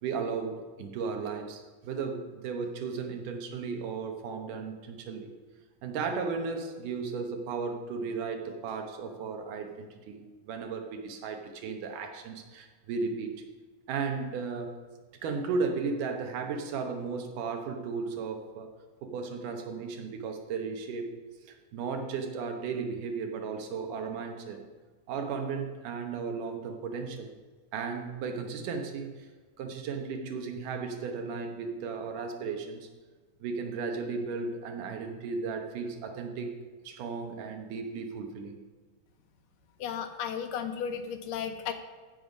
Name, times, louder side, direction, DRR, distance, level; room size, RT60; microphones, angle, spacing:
voice 1, 0.0-5.3 5.8-13.4 13.9-14.8 15.2-18.7 19.0-21.1 21.5-24.6 25.1-27.3 27.7-29.3 29.6-32.9 33.4-36.5 36.8-38.6, right 5 dB, 75° right, 4 dB, 2.6 m, -35 dB
voice 2, 39.8-41.7, left 7 dB, 85° left, 7 dB, 2.5 m, -34 dB
15.0 x 5.6 x 5.3 m, 1.4 s
omnidirectional pair, 3.8 m